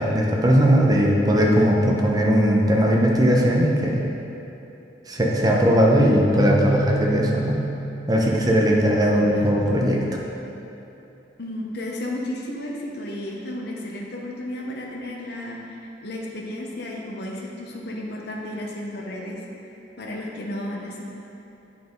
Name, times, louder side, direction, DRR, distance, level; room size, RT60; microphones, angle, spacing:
voice 1, 0.0-4.1 5.1-7.6 8.1-10.0, equal, 20° right, -1 dB, 0.8 m, -19 dB
Keyboard (musical), 6.3-9.2, right 1 dB, 40° left, 0.6 m, -28 dB
voice 2, 9.1-9.5 9.8-9.9 11.4-19.4 20.0-21.0, left 1 dB, 65° left, -2 dB, 0.9 m, -33 dB
8.4 x 5.5 x 3.9 m, 3.0 s
head